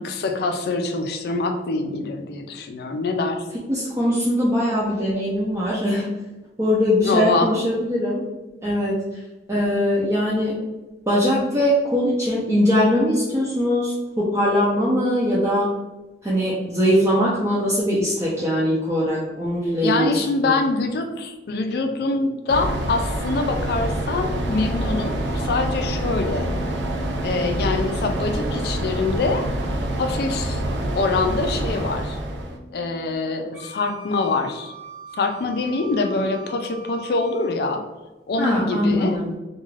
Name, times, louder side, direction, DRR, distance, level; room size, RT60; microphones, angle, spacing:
voice 1, 0.0-3.4 7.0-7.5 19.8-26.5 27.2-29.5 30.0-30.6 31.0-32.2 32.7-34.7 35.2-37.8 38.3-39.2, left 3 dB, 60° left, 5 dB, 0.3 m, -24 dB
voice 2, 3.7-6.1 6.6-8.2 8.6-9.2 9.5-10.6 11.1-15.7 16.2-20.5 38.4-39.3, equal, 15° right, -7 dB, 0.4 m, -21 dB
sound 1, 22.5-32.6, right 1 dB, 75° right, 0.4 m, -26 dB
sound 2, 24.1-33.1, left 1 dB, 20° left, 0.8 m, -38 dB
Wind instrument woodwind instrument, 33.5-37.6, right 3 dB, 60° right, 0.9 m, -41 dB
2.4 x 2.3 x 3.1 m, 1.1 s
head